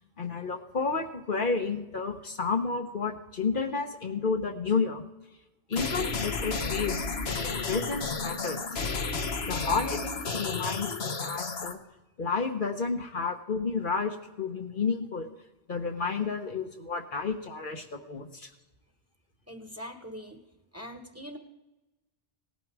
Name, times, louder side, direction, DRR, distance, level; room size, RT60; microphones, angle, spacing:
voice 1, 0.2-5.0 5.7-7.0 7.4-8.6 9.4-11.8 12.2-15.3 15.7-18.5, left 4 dB, 55° left, 4 dB, 1.2 m, -31 dB
sound 1, 5.7-11.7, left 4 dB, 75° left, 1.3 m, -32 dB
voice 2, 19.5-20.4 20.7-21.4, equal, 15° right, 5 dB, 1.3 m, -42 dB
18.5 x 11.5 x 4.7 m, 1.0 s
omnidirectional pair, 1.0 m